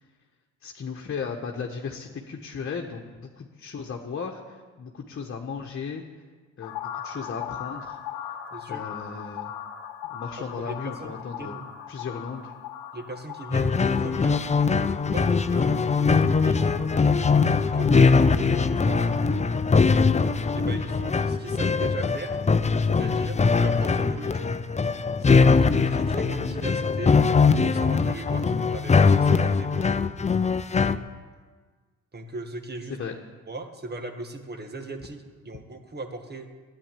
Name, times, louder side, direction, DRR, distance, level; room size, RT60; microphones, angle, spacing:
voice 1, 0.6-6.0 6.6-8.0 8.7-9.5 10.1-11.5 11.9-12.5 32.9-33.2, left 5 dB, 40° left, 1 dB, 1.4 m, -35 dB
sound 1, 6.6-19.3, left 9 dB, 85° left, 1.1 m, -40 dB
voice 2, 8.5-8.8 10.7-11.6 12.9-14.6 15.0-16.8 17.5-19.2 20.5-22.4 22.8-24.5 25.2-27.2 27.6-29.8 32.1-33.0 33.5-36.5, right 2 dB, 30° right, 6 dB, 1.9 m, -38 dB
sound 2, 13.5-31.0, left 4 dB, 20° left, 0.7 m, -21 dB
10.0 x 9.4 x 9.2 m, 1.4 s
supercardioid pair, 65°, 32 cm